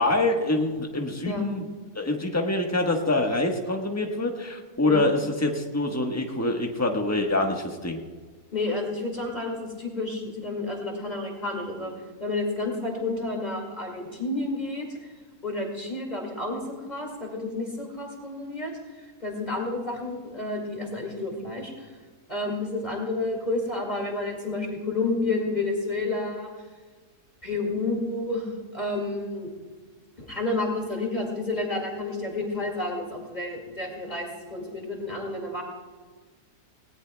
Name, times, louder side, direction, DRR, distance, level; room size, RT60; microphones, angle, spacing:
voice 1, 0.0-1.6 1.9-8.0, left 2 dB, 10° left, 2 dB, 1.1 m, -25 dB
voice 2, 8.5-11.9 12.2-15.1 15.4-18.7 19.2-21.9 22.3-26.5 27.4-28.5 28.7-29.5 30.2-35.6, left 2 dB, 25° left, 0 dB, 2.2 m, -30 dB
18.5 x 18.0 x 2.3 m, 1.4 s
omnidirectional pair, 1.7 m